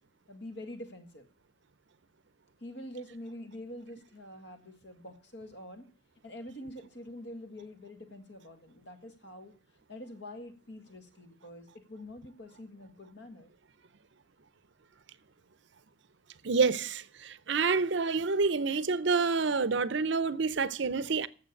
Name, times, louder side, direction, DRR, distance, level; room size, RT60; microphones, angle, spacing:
voice 1, 0.3-1.3 2.6-5.9 6.2-9.5 9.9-13.5, left 1 dB, 55° left, 1.7 m, -46 dB
voice 2, 16.4-21.3, right 4 dB, 60° right, 0.6 m, -28 dB
8.8 x 7.3 x 8.3 m
head